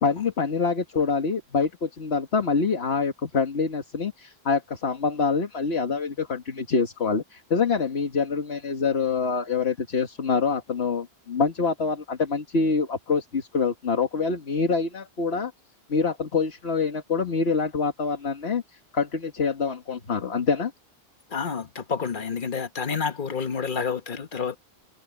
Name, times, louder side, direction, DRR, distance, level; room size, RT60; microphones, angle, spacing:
voice 1, 0.0-15.5 15.9-20.7, left 5 dB, 75° left, 1.9 m, -25 dB
voice 2, 21.3-24.6, left 6 dB, 50° left, 1.4 m, -29 dB
omnidirectional pair, 1.1 m